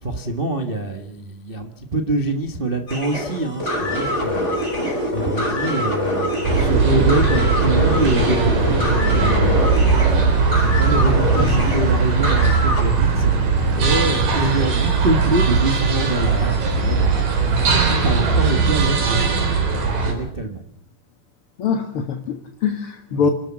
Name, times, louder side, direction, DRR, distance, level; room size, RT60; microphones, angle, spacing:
voice 1, 0.0-4.7 5.1-9.7 10.2-10.3 10.6-19.3 19.7-20.6 23.1-23.3, right 2 dB, 55° right, 4 dB, 0.6 m, -25 dB
sound 1, 2.9-12.8, left 1 dB, 20° left, 5.3 m, -24 dB
sound 2, 6.4-20.1, right 4 dB, 70° right, 5.3 m, -19 dB
voice 2, 11.3-11.7 21.6-23.3, left 6 dB, 50° left, 6 dB, 1.8 m, -23 dB
29.0 x 13.5 x 7.5 m, 0.71 s
omnidirectional pair, 4.1 m